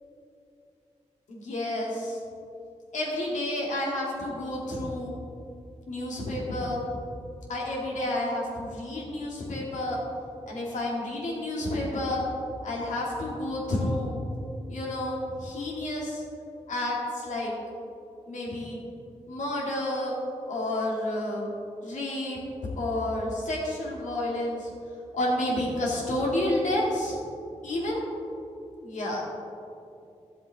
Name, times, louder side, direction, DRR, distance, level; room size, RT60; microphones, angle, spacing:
voice 1, 1.3-2.2 2.9-5.1 5.9-7.0 7.5-10.0 10.5-12.2 12.6-14.2 14.7-16.2 16.7-17.6 18.3-18.8 19.3-20.2 20.5-21.5 21.8-24.7 25.1-27.2 27.6-28.0 28.8-29.3, left 1 dB, 85° left, -4 dB, 2.3 m, -30 dB
13.0 x 7.4 x 3.5 m, 2.6 s
cardioid pair, 50°, 12 cm